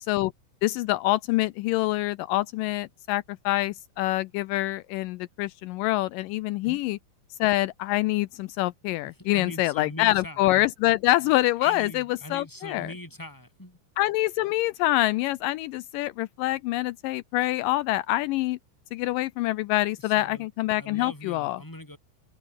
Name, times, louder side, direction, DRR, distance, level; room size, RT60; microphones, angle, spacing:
voice 1, 0.6-7.0 7.4-12.9 14.0-18.6 18.9-21.6, left 17 dB, 80° left, 2.2 m, -26 dB
voice 2, 9.1-10.6 11.6-13.8 20.0-20.5 20.8-22.0, left 1 dB, 5° left, 4.8 m, -41 dB
omnidirectional pair, 4.0 m